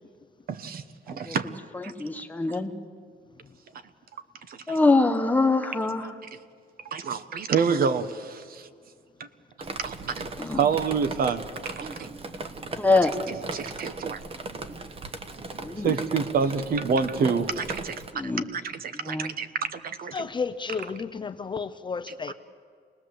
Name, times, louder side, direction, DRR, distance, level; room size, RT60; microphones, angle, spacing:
voice 1, 0.5-1.5 1.8-1.9 4.5-4.8 6.0-6.1 6.8-8.7 9.8-10.2 10.5-12.1 13.3-14.2 15.8-18.2 18.5-20.3 22.3-22.4, right 6 dB, 55° right, 11 dB, 1.1 m, -28 dB
voice 2, 2.0-2.7 4.7-6.1 10.4-10.6 12.7-13.1 15.6-15.9 18.1-18.4 19.0-19.3, left 3 dB, 10° left, 5 dB, 1.3 m, -24 dB
Drip, 9.6-18.1, right 3 dB, 30° right, 1.2 m, -37 dB
voice 3, 20.1-22.3, left 5 dB, 25° left, 9 dB, 0.6 m, -32 dB
27.5 x 19.5 x 7.8 m, 2.1 s
cardioid pair, 165°, 18 cm